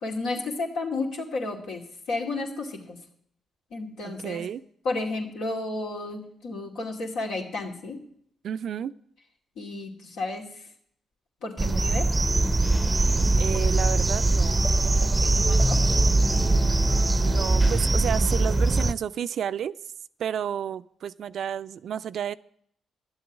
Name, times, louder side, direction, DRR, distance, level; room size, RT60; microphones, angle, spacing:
voice 1, 0.0-3.0 3.7-4.4 4.8-8.0 9.6-10.7 11.4-12.1 15.0-15.8, left 2 dB, 75° left, 0 dB, 2.4 m, -32 dB
voice 2, 4.0-4.6 8.4-8.9 13.4-14.7 17.2-19.7 20.2-22.3, right 9 dB, 65° right, 15 dB, 0.4 m, -31 dB
sound 1, 11.6-18.9, right 2 dB, 25° right, 0.6 m, -22 dB
sound 2, 12.2-17.8, left 2 dB, 25° left, 1.7 m, -36 dB
11.5 x 8.0 x 8.0 m, 0.66 s
hypercardioid pair, 45°, 0 cm